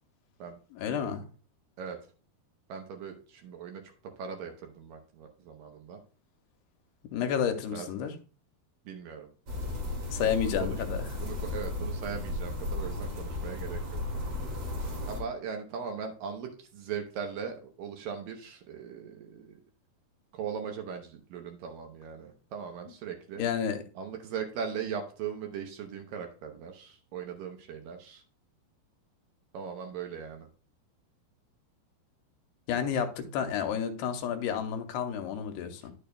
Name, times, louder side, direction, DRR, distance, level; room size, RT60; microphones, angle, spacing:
voice 1, 0.7-1.2 7.0-8.1 10.1-11.1 23.4-23.8 32.7-35.9, left 8 dB, 90° left, 2.8 m, -31 dB
voice 2, 2.7-6.0 7.7-7.9 8.9-9.3 10.4-10.8 11.2-14.4 15.1-19.6 20.3-23.4 24.0-28.2 29.5-30.5, right 7 dB, 70° right, 2.3 m, -39 dB
sound 1, 9.5-15.2, left 2 dB, 45° right, 2.7 m, -34 dB
11.0 x 6.7 x 2.2 m
omnidirectional pair, 4.6 m